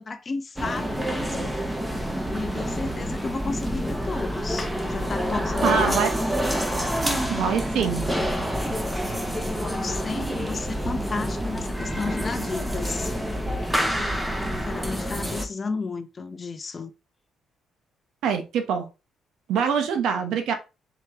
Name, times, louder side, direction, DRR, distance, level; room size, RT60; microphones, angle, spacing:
voice 1, 0.0-1.7 2.3-6.0 9.4-13.7 14.5-16.9, left 4 dB, 35° left, 0.6 m, -33 dB
sound 1, 0.6-15.5, equal, 5° right, 0.8 m, -27 dB
voice 2, 5.6-6.1 7.3-8.0 18.2-18.9 19.5-20.5, right 7 dB, 80° right, 0.9 m, -24 dB
4.6 x 3.0 x 3.5 m
cardioid pair, 90°, 0 cm